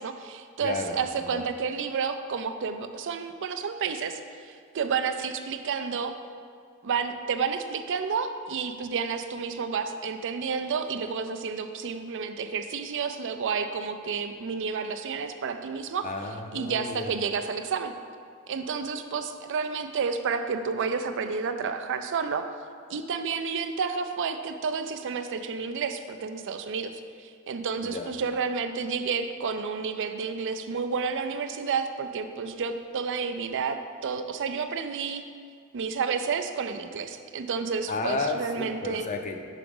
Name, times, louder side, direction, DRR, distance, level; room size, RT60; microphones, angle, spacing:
voice 1, 0.0-6.1 6.8-16.1 16.5-17.9 18.5-22.4 22.9-35.2 35.7-39.1, right 5 dB, 60° right, 8 dB, 0.4 m, -30 dB
voice 2, 0.6-1.0 1.3-1.4 16.0-17.1 27.8-28.1 37.9-39.4, left 3 dB, 35° left, 5 dB, 0.5 m, -32 dB
5.9 x 5.0 x 5.3 m, 2.1 s
head